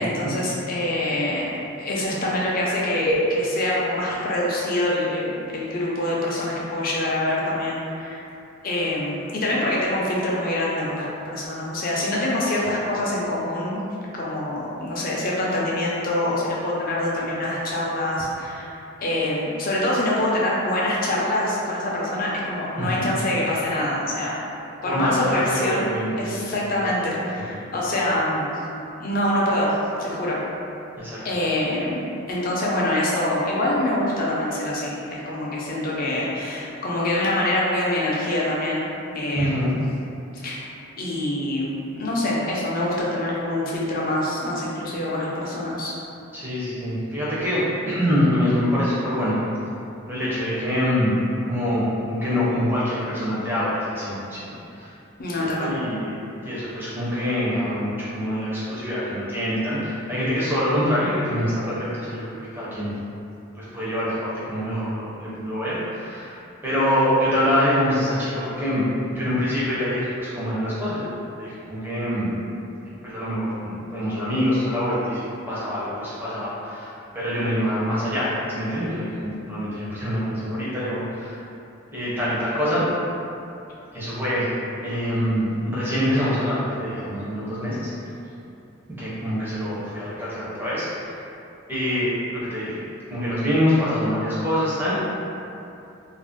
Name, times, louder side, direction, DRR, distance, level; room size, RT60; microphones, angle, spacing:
voice 1, 0.0-1.5 1.8-8.3 8.6-13.8 14.1-24.4 24.8-25.9 26.2-28.6 29.0-29.7 30.0-30.4 31.2-32.0 32.3-38.9 39.1-39.8 40.4-40.7 41.0-45.9 55.2-55.7, left 1 dB, 40° left, -5 dB, 0.5 m, -25 dB
voice 2, 22.8-23.1 24.9-26.9 27.4-27.6 31.0-31.2 39.3-39.7 46.3-49.4 50.1-51.2 51.4-54.9 55.4-56.1 56.4-62.2 62.5-62.9 63.6-68.8 69.1-71.1 71.4-72.3 73.0-81.4 81.9-82.9 83.9-84.5 84.8-88.1 89.0-91.2 91.7-92.8 93.1-95.0, equal, 10° right, -10 dB, 0.6 m, -25 dB
2.5 x 2.0 x 3.5 m, 2.7 s
head